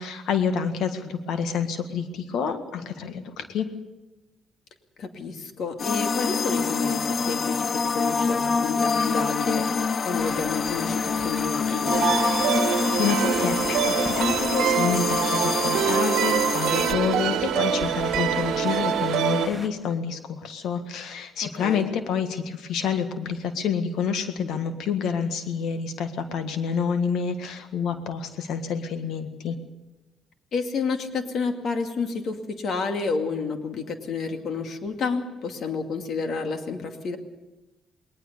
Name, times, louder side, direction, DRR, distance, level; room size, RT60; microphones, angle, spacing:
voice 1, 0.0-3.7 12.5-29.6, left 6 dB, 80° left, 8 dB, 1.7 m, -28 dB
voice 2, 5.0-9.6 10.0-12.1 21.6-21.9 30.5-37.2, left 4 dB, 65° left, 6 dB, 2.3 m, -30 dB
sound 1, 5.8-16.9, left 5 dB, 50° left, 0.7 m, -26 dB
sound 2, 10.2-19.7, right 1 dB, 5° right, 1.9 m, -39 dB
sound 3, 11.9-19.5, right 9 dB, 90° right, 1.2 m, -25 dB
20.0 x 19.5 x 6.8 m, 1.1 s
cardioid pair, 90°, 0 cm